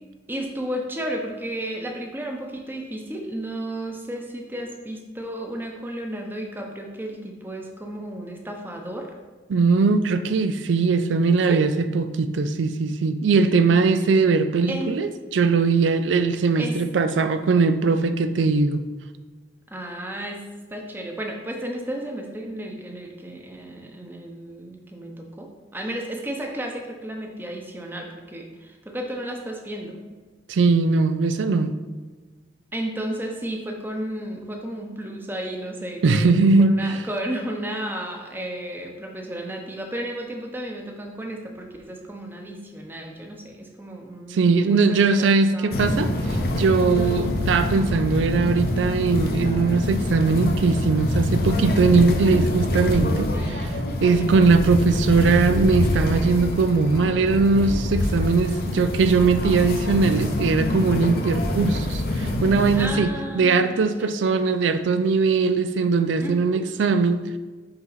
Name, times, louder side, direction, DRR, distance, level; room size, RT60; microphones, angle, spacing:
voice 1, 0.3-9.1 11.5-11.6 14.7-14.9 16.6-16.8 19.7-20.4 20.7-25.5 25.7-30.0 32.7-36.3 36.6-46.0 46.9-47.1 53.3-53.6 54.1-54.4 62.7-64.4 66.2-66.6, right 1 dB, 10° right, 2 dB, 0.7 m, -33 dB
voice 2, 9.5-18.8 30.5-31.7 36.0-37.0 44.3-53.6 54.0-67.4, right 4 dB, 85° right, 10 dB, 0.4 m, -20 dB
sound 1, 45.7-62.9, left 1 dB, 55° left, 0.8 m, -25 dB
5.7 x 5.5 x 3.9 m, 1.3 s
head